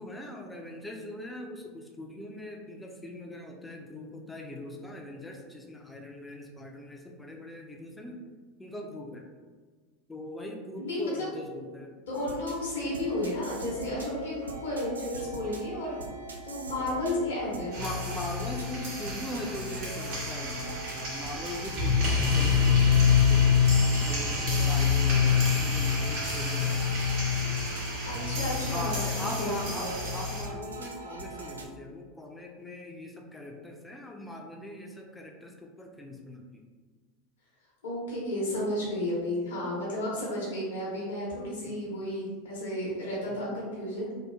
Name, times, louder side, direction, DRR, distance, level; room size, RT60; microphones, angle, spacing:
voice 1, 0.0-8.2 8.6-9.3 10.1-12.0 15.7-15.8 17.7-23.6 24.0-26.8 28.7-36.6 43.3-43.4, left 1 dB, 10° left, 1 dB, 0.4 m, -41 dB
voice 2, 10.8-11.3 12.1-16.1 16.4-17.8 28.1-29.5 29.8-30.0 37.8-44.1, left 1 dB, 75° left, -6 dB, 0.8 m, -32 dB
sound 1, 12.1-31.7, right 2 dB, 85° right, 0.3 m, -42 dB
sound 2, 17.7-30.4, left 5 dB, 60° right, 0.9 m, -26 dB
2.8 x 2.4 x 2.2 m, 1.4 s
hypercardioid pair, 85°, 0 cm